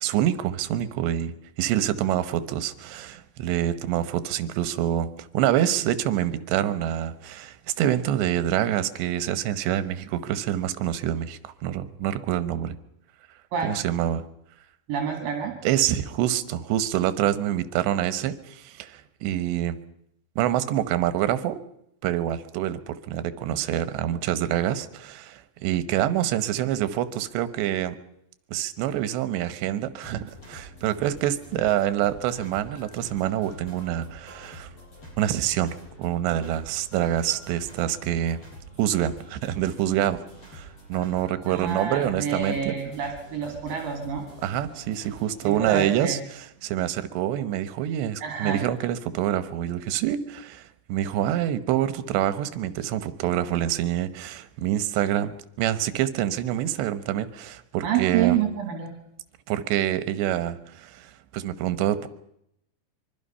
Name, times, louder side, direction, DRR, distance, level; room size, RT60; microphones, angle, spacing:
voice 1, 0.0-12.8 13.6-14.2 15.6-19.8 20.4-21.6 22.0-28.0 28.5-34.7 35.2-38.4 38.8-40.2 40.5-42.8 44.4-58.4 59.5-62.1, right 11 dB, 80° right, 12 dB, 3.3 m, -26 dB
voice 2, 14.9-15.6 41.5-44.2 45.4-46.2 48.2-48.7 57.8-58.9, right 8 dB, 60° right, 2 dB, 3.8 m, -28 dB
sound 1, 30.0-46.0, equal, 35° left, 9.0 m, -46 dB
24.5 x 24.0 x 5.6 m, 0.77 s
omnidirectional pair, 5.1 m